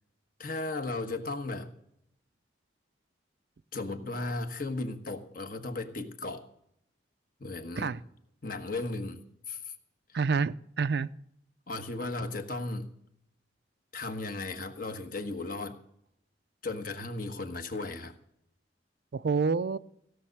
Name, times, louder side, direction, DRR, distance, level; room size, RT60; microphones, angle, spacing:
voice 1, 0.4-1.7 3.7-6.5 7.4-7.9 8.4-9.7 10.1-10.2 11.7-12.9 13.9-15.8 16.6-18.2, left 2 dB, 50° left, 7 dB, 1.3 m, -36 dB
voice 2, 10.1-11.1 19.1-19.8, right 5 dB, 60° right, 15 dB, 0.4 m, -28 dB
16.5 x 6.5 x 8.0 m, 0.73 s
head